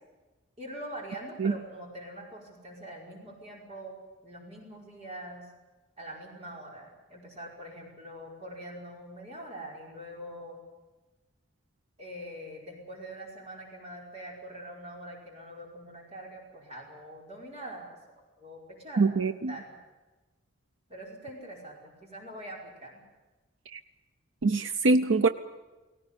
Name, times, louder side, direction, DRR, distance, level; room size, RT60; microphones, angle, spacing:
voice 1, 0.6-4.0 4.2-5.5 6.0-10.6 12.0-18.0 18.4-19.2 19.5-19.8 20.9-23.0, right 1 dB, 30° right, -1 dB, 5.1 m, -43 dB
voice 2, 19.0-19.5 23.7-23.8 24.4-25.3, right 3 dB, 80° right, 10 dB, 0.6 m, -24 dB
18.5 x 18.0 x 9.8 m, 1.2 s
head